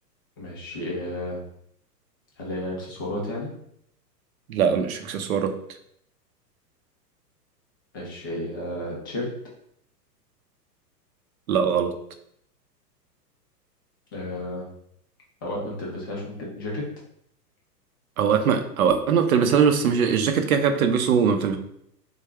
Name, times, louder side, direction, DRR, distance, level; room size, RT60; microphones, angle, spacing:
voice 1, 0.4-1.4 2.4-3.5 7.9-9.3 14.1-14.7 15.4-16.9, left 1 dB, 15° left, -3 dB, 0.3 m, -32 dB
voice 2, 4.5-5.5 11.5-11.9 18.2-21.6, right 7 dB, 60° right, 7 dB, 0.6 m, -21 dB
3.5 x 2.3 x 3.3 m, 0.71 s
figure-of-eight pair, 110°, 49 cm